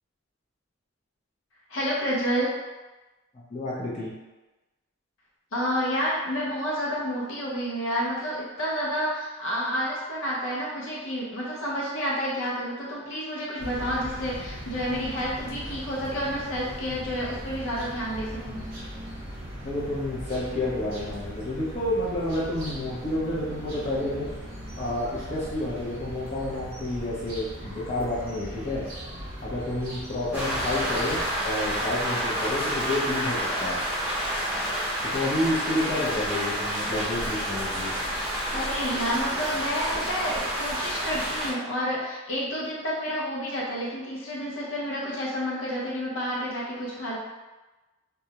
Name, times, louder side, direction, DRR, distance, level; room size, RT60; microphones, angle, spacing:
voice 1, 1.7-2.5 5.5-18.6 38.5-47.2, equal, 75° left, -5 dB, 0.6 m, -29 dB
voice 2, 3.3-4.1 19.6-24.3 24.7-28.8 29.4-31.2 31.4-33.8 35.1-37.9, left 1 dB, 35° left, -8 dB, 0.5 m, -30 dB
sound 1, 13.6-31.4, equal, 45° right, 0.7 m, -39 dB
Rain, 30.3-41.5, equal, 10° right, 0.7 m, -29 dB
2.3 x 2.0 x 2.8 m, 1.1 s
head